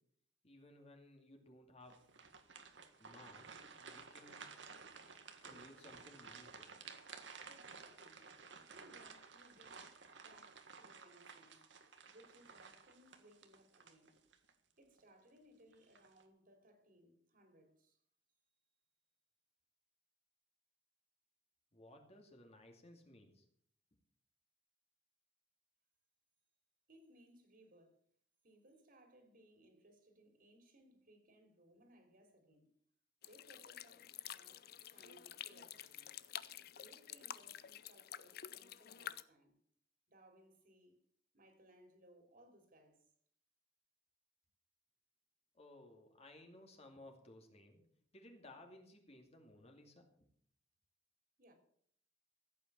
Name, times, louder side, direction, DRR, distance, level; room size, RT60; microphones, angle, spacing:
voice 1, 0.4-2.0 3.0-4.5 5.4-6.8 21.7-23.4 45.5-47.8 48.1-50.1, left 1 dB, 35° left, 2.5 m, -59 dB
sound 1, 1.9-14.5 15.0-15.1 15.7-16.2, right 5 dB, 75° right, 1.8 m, -55 dB
voice 2, 7.4-8.4 8.7-9.9 10.2-11.6 12.0-14.2 14.8-18.0 26.9-28.0 28.4-32.7 33.3-34.7 34.9-36.1 36.6-39.6 40.1-41.0 41.3-43.1 51.4-51.6, right 1 dB, 50° right, 3.3 m, -65 dB
sound 2, 33.2-39.2, left 10 dB, 55° left, 0.6 m, -50 dB
15.0 x 8.6 x 6.9 m
head